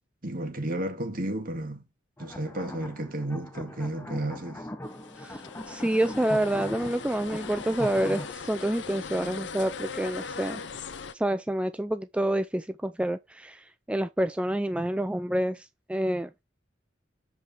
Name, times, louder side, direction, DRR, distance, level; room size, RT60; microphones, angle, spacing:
voice 1, 0.2-1.8 2.2-4.7, right 1 dB, 50° right, 2.1 m, -32 dB
sound 1, 2.2-8.3, left 1 dB, 15° left, 0.9 m, -40 dB
sound 2, 4.8-11.1, left 5 dB, 75° left, 0.8 m, -40 dB
voice 2, 5.2-10.6 11.1-16.4, right 1 dB, 5° right, 0.4 m, -28 dB
7.5 x 5.1 x 4.4 m
head